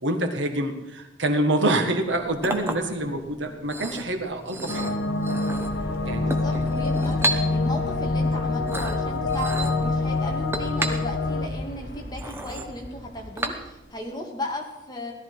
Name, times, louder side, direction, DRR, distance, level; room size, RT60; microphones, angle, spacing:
voice 1, 0.0-4.9 6.0-6.7, right 1 dB, 70° right, 5 dB, 1.8 m, -26 dB
Chink clink, 2.0-14.0, right 1 dB, 10° right, 1.1 m, -34 dB
sound 1, 4.7-11.5, left 3 dB, 90° left, 1.2 m, -26 dB
Aircraft, 5.5-13.9, equal, 50° left, 2.4 m, -38 dB
voice 2, 6.1-7.2 7.5-15.1, left 1 dB, 20° left, 0 dB, 2.3 m, -35 dB
17.5 x 13.0 x 4.8 m, 0.95 s
head